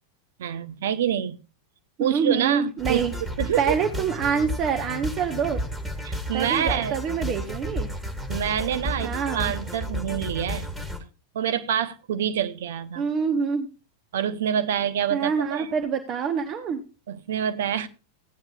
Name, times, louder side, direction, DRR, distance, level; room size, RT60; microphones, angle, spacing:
voice 1, 0.4-1.4 2.0-3.1 3.4-3.7 6.0-7.0 8.3-10.7 11.3-13.1 14.1-15.7 17.1-17.9, right 9 dB, 60° right, 0.9 m, -27 dB
voice 2, 2.0-3.1 3.6-5.6 6.3-7.9 9.0-9.5 13.0-13.7 15.1-16.8, right 6 dB, 35° right, 1.0 m, -26 dB
sound 1, 2.8-11.0, equal, 5° right, 1.8 m, -32 dB
16.0 x 8.9 x 2.4 m
figure-of-eight pair, 90°, 0 cm